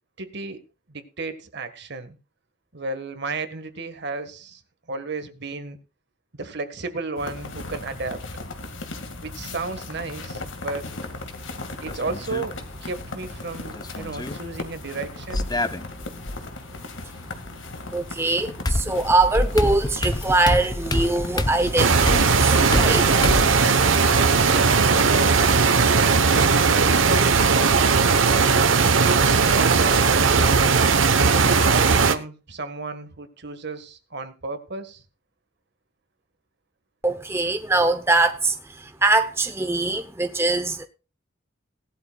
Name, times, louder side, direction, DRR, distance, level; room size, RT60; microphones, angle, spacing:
voice 1, 0.2-0.6 0.9-2.2 2.7-4.6 4.9-5.8 6.3-8.2 9.2-10.9 11.8-15.5 24.5-25.4 26.3-28.1 28.8-30.5 31.6-35.0, right 3 dB, 60° right, 1.7 m, -33 dB
sound 1, 7.2-26.5, left 2 dB, 75° left, 2.1 m, -37 dB
sound 2, 11.9-12.5 13.8-14.4 15.3-16.4 18.1-18.2 18.7-23.6, left 1 dB, 20° left, 0.7 m, -26 dB
voice 2, 17.9-24.0 37.0-40.9, right 2 dB, 15° right, 0.8 m, -23 dB
sound 3, 21.8-32.2, right 5 dB, 75° right, 1.0 m, -18 dB
18.0 x 12.0 x 2.4 m
head